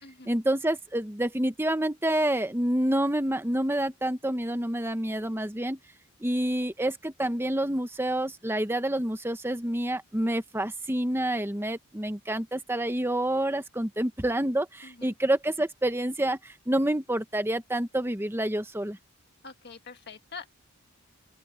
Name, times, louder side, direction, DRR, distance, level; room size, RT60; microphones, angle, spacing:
voice 1, 0.2-5.8 6.2-19.0, right 1 dB, 10° right, 1.1 m, -28 dB
voice 2, 19.4-20.5, left 5 dB, 50° left, 1.8 m, -44 dB
open air
head